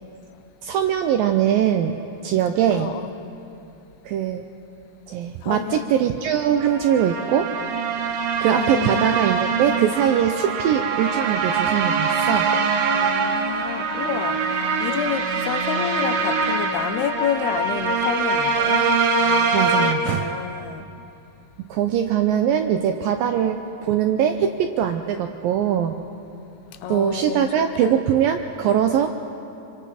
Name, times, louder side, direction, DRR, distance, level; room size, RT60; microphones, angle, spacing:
voice 1, 0.6-2.0 2.2-2.9 4.1-4.4 5.1-7.5 8.4-12.6 19.5-20.3 21.7-26.0 26.9-29.1, right 9 dB, 80° right, 6 dB, 2.1 m, -22 dB
voice 2, 2.7-3.1 5.4-5.9 8.6-9.1 12.9-20.9 26.8-27.5 27.8-28.0, left 10 dB, 80° left, 10 dB, 2.6 m, -30 dB
sound 1, 6.6-19.9, right 4 dB, 65° right, 2.5 m, -23 dB
26.5 x 24.5 x 4.3 m, 2.8 s
omnidirectional pair, 4.7 m